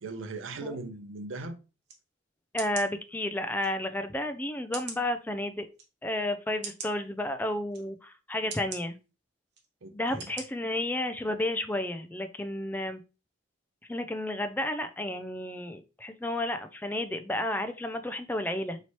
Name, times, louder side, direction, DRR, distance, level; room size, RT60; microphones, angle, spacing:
voice 1, 0.0-1.6 9.8-10.3, right 3 dB, 85° right, 0.6 m, -39 dB
sound 1, 1.9-2.0 2.6-2.9 3.6-3.7 4.7-5.0 5.7-5.8 6.6-6.9 7.7-7.8 8.5-8.8 9.5-9.7 10.2-10.4 10.9-11.0, right 5 dB, 60° right, 0.9 m, -40 dB
voice 2, 2.5-5.7 6.0-9.0 9.9-13.0 13.9-18.8, left 1 dB, 10° left, 0.3 m, -32 dB
4.3 x 2.8 x 3.0 m
head